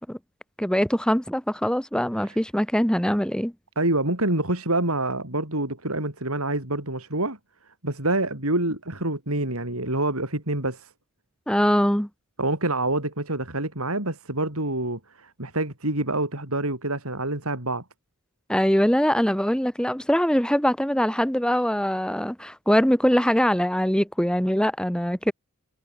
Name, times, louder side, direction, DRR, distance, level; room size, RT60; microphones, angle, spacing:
voice 1, 0.6-3.5 11.5-12.1 18.5-25.3, equal, 5° left, 1.7 m, -22 dB
voice 2, 3.8-7.4 7.8-10.9 12.4-17.8, right 2 dB, 75° right, 7.1 m, -26 dB
head